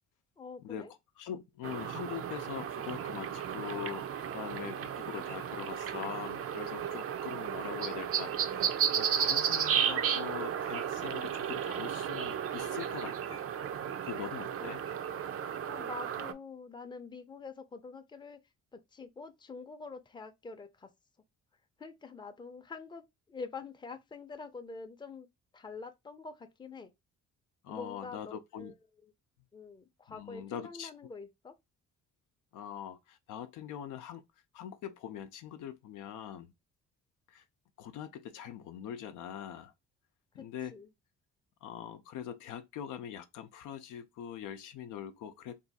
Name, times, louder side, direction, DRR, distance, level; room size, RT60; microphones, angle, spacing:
voice 1, 0.4-0.9 14.6-14.8 15.6-18.4 18.7-20.9 21.8-25.3 25.5-26.9 27.7-28.7 29.0-29.1 29.5-31.5 40.3-40.9, left 4 dB, 15° left, 0.5 m, -46 dB
voice 2, 1.2-4.1 4.3-8.6 8.9-13.4 14.0-14.8 27.6-28.7 30.1-30.9 32.5-34.2 34.5-36.5 37.3-37.4 37.8-39.7 40.3-40.8 41.6-45.6, left 9 dB, 85° left, 0.6 m, -43 dB
sound 1, 1.6-16.3, right 8 dB, 50° right, 0.5 m, -34 dB
2.7 x 2.4 x 4.0 m
cardioid pair, 90°, 30 cm